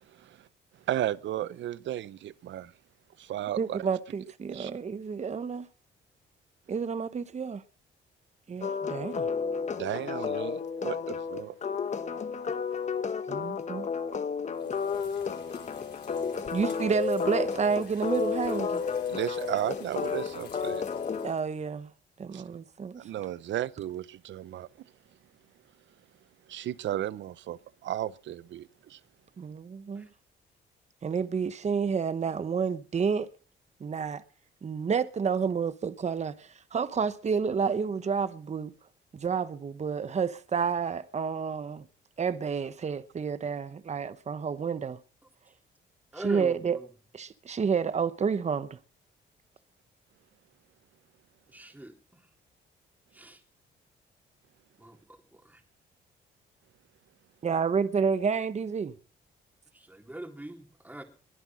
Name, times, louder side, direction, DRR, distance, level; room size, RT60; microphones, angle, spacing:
voice 1, 0.1-0.5 0.9-2.7 3.2-3.8 4.5-4.7 9.8-11.5 19.1-20.8 22.3-22.4 23.0-24.7 26.5-29.0, right 12 dB, 70° right, 0.7 m, -34 dB
voice 2, 3.6-5.7 6.7-7.6 8.5-9.3 13.3-13.9 16.5-18.8 21.2-21.9 22.2-23.0 29.4-30.1 31.0-33.3 33.8-34.2 34.6-38.7 39.1-41.9 42.2-45.0 46.2-46.8 47.1-48.8 57.4-58.9, right 6 dB, 35° right, 1.0 m, -30 dB
sound 1, 8.6-21.3, left 5 dB, 35° left, 1.1 m, -32 dB
sound 2, 14.7-21.3, left 5 dB, 60° left, 4.4 m, -39 dB
voice 3, 46.1-46.9 51.5-52.2 53.1-53.4 54.8-55.6 59.7-61.0, right 1 dB, 10° right, 3.3 m, -42 dB
22.0 x 8.1 x 6.2 m
cardioid pair, 90°, 20 cm